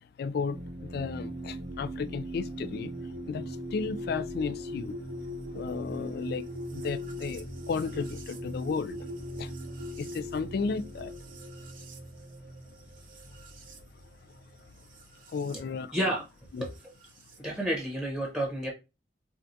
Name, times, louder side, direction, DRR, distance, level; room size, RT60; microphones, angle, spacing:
voice 1, 0.2-2.9 3.3-5.0 5.5-9.1 9.4-9.5 10.0-11.1 14.8-14.9 15.3-15.9 16.5-16.7, left 5 dB, 60° left, 0.3 m, -34 dB
sound 1, 0.5-15.6 16.7-17.4, equal, 50° right, 0.6 m, -40 dB
voice 2, 15.9-16.2 16.6-16.8 17.4-18.7, right 1 dB, ahead, 0.8 m, -30 dB
4.6 x 2.3 x 2.6 m
head